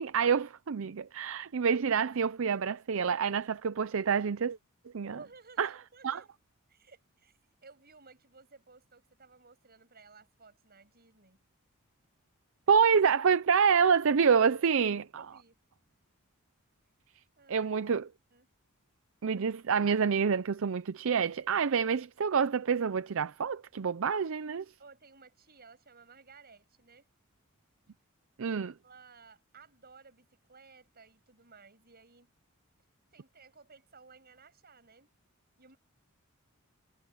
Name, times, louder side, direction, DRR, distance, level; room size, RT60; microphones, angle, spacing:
voice 1, 0.0-4.6 4.9-5.2 5.6-5.7 6.0-6.2 12.7-15.2 17.5-18.1 19.2-24.7 28.4-28.7, right 6 dB, 65° right, 0.5 m, -27 dB
voice 2, 5.0-6.3 6.7-11.4 15.2-15.6 17.4-17.7 18.3-18.5 24.8-27.1 28.4-32.3 33.1-35.1 35.6-35.8, right 4 dB, 45° right, 8.0 m, -57 dB
head